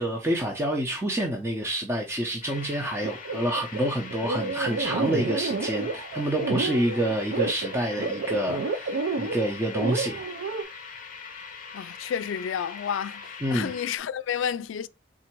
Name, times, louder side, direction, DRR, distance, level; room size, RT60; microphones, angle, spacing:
voice 1, 0.0-10.3 13.4-13.7, right 1 dB, 15° right, 0.6 m, -28 dB
sound 1, 2.4-14.0, left 5 dB, 45° left, 0.8 m, -42 dB
sound 2, 3.0-10.6, right 4 dB, 70° right, 0.5 m, -30 dB
voice 2, 11.7-14.9, left 8 dB, 90° left, 0.3 m, -31 dB
3.7 x 2.6 x 4.4 m
head